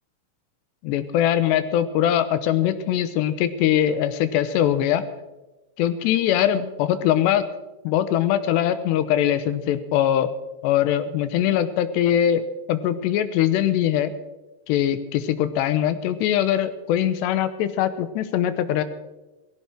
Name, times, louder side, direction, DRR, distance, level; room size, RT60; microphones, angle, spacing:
voice 1, 0.8-5.0 5.8-7.4 7.8-10.3 10.6-14.1 14.7-18.8, left 10 dB, 90° left, 12 dB, 3.1 m, -22 dB
18.0 x 15.5 x 4.5 m, 1.1 s
omnidirectional pair, 4.8 m